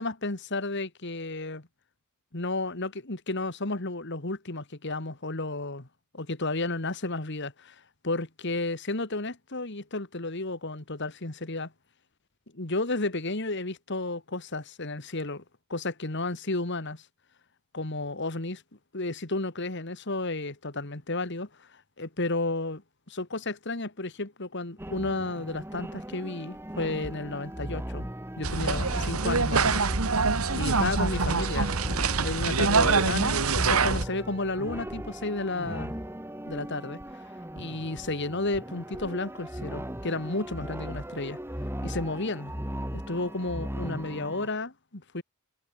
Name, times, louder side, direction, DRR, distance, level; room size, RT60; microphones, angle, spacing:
voice 1, 0.0-1.7 2.3-5.9 6.1-7.8 8.0-11.7 12.5-15.4 15.7-17.0 17.7-18.6 18.9-21.7 22.0-22.8 23.1-28.1 28.4-29.8 30.5-31.7 32.2-35.9 36.5-37.0 37.6-41.4 41.8-42.5 42.9-45.2, left 2 dB, 55° left, 2.2 m, -32 dB
sound 1, 24.8-44.5, equal, 10° right, 2.1 m, -38 dB
sound 2, 28.4-34.1, right 4 dB, 85° right, 1.9 m, -25 dB
head